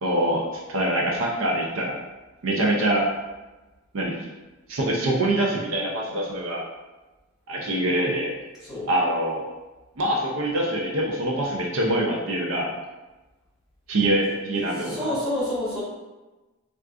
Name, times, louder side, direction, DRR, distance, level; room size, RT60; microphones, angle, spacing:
voice 1, 0.0-2.0 2.4-3.1 3.9-4.2 4.7-6.7 7.5-8.3 8.9-9.4 10.0-12.7 13.9-15.0, right 1 dB, 70° right, -2 dB, 0.5 m, -24 dB
voice 2, 14.7-15.8, left 1 dB, ahead, -11 dB, 1.3 m, -28 dB
3.6 x 2.4 x 2.4 m, 1.1 s
head